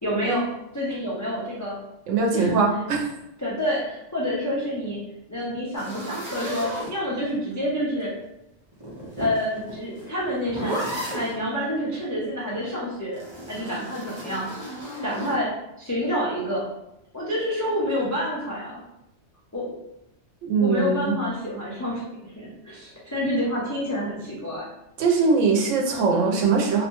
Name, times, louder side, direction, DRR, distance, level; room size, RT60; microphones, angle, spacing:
voice 1, 0.0-0.5 0.7-1.8 2.3-2.8 3.4-5.0 5.3-8.1 9.2-13.2 13.5-14.5 15.0-15.5 15.8-16.6 17.1-18.8 19.5-19.7 20.6-24.7, equal, 30° left, -7 dB, 0.3 m, -28 dB
voice 2, 2.1-3.0 20.4-21.1 25.0-26.9, right 4 dB, 85° right, 0 dB, 0.9 m, -21 dB
sound 1, 5.7-7.5 8.7-11.4 13.1-15.4, equal, 25° right, 0.7 m, -34 dB
2.6 x 2.1 x 2.9 m, 0.86 s
omnidirectional pair, 1.3 m